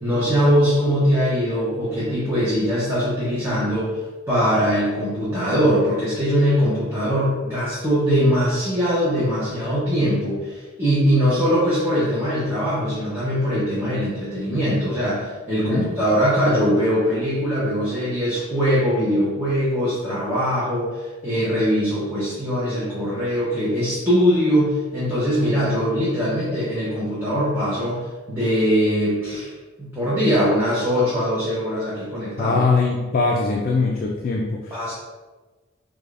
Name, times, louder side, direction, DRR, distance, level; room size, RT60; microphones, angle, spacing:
voice 1, 0.0-4.0 4.3-29.5 29.8-32.6 34.7-34.9, equal, 10° right, -11 dB, 0.7 m, -21 dB
voice 2, 32.4-34.8, left 3 dB, 45° left, 0 dB, 0.3 m, -21 dB
4.8 x 2.3 x 2.4 m, 1.3 s
head